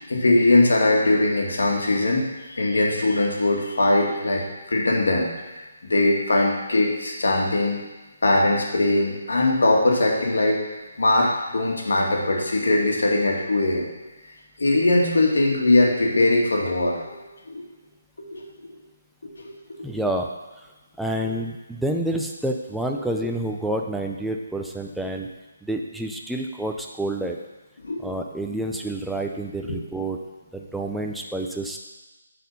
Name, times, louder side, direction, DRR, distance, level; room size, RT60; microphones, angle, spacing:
voice 1, 0.1-5.3 5.8-7.8 8.2-10.6 11.0-13.9 14.6-17.1 17.5-17.6 18.2-18.7 19.2-19.8 27.8-28.1, left 2 dB, 85° left, -1 dB, 1.8 m, -21 dB
voice 2, 19.8-20.3 21.0-25.3 25.6-27.4 28.0-30.2 30.5-31.8, right 1 dB, ahead, 1 dB, 0.4 m, -28 dB
8.2 x 4.2 x 5.3 m, 1.2 s
hypercardioid pair, 170°, 0 cm